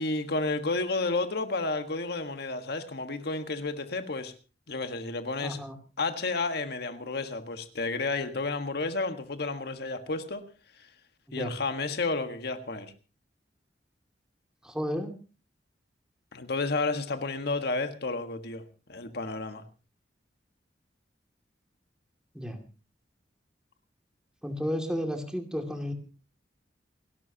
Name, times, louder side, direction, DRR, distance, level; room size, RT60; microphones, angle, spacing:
voice 1, 0.0-4.3 4.7-5.6 6.0-10.4 11.3-12.9 16.3-18.6 18.9-19.6, left 3 dB, 60° left, 1.5 m, -31 dB
voice 2, 5.4-5.8 11.3-11.5 14.6-15.1 22.3-22.6 24.4-25.9, equal, 5° right, 2.4 m, -32 dB
29.0 x 12.0 x 2.9 m
head